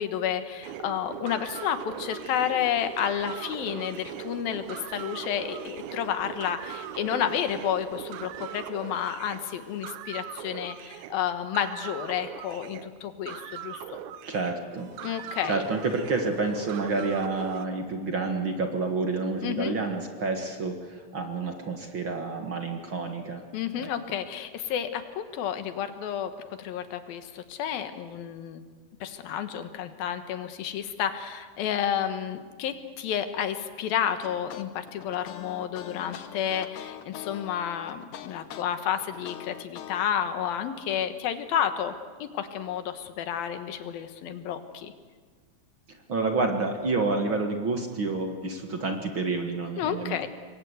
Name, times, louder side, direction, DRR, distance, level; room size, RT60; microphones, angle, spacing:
voice 1, 0.0-14.0 15.0-15.6 19.4-19.7 23.5-28.6 29.0-41.9 42.2-44.9 49.8-50.3, left 9 dB, 90° left, 9 dB, 3.2 m, -31 dB
sound 1, 0.6-17.7, right 10 dB, 70° right, 2.1 m, -40 dB
voice 2, 14.3-14.9 15.4-23.4 23.8-23.9 46.1-50.2, right 3 dB, 45° right, 4 dB, 1.9 m, -29 dB
sound 2, 34.2-40.0, left 11 dB, 70° left, 2.5 m, -42 dB
26.5 x 22.5 x 8.1 m, 1.5 s
omnidirectional pair, 4.1 m